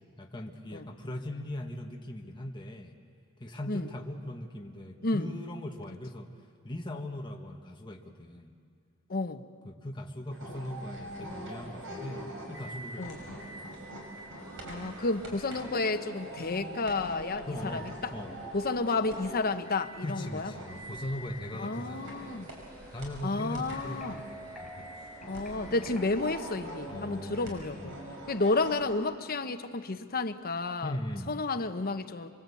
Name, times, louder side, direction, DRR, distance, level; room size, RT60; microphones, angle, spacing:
voice 1, 0.2-3.0 3.4-6.3 6.6-8.6 9.6-13.8 15.2-15.3 17.5-18.4 20.0-22.2 22.9-24.9 26.9-28.0 30.8-31.4, left 1 dB, 20° left, 1 dB, 1.6 m, -40 dB
voice 2, 9.1-9.4 10.5-10.6 13.0-13.2 14.7-17.9 18.5-20.5 21.5-22.5 23.2-24.2 25.3-27.9 28.3-31.0 31.3-32.3, left 3 dB, 45° left, 8 dB, 1.1 m, -31 dB
sound 1, 10.3-29.0, right 1 dB, 65° right, 6.2 m, -43 dB
sound 2, 23.9-28.0, right 1 dB, ahead, 3.9 m, -49 dB
27.0 x 23.5 x 8.5 m, 2.1 s
head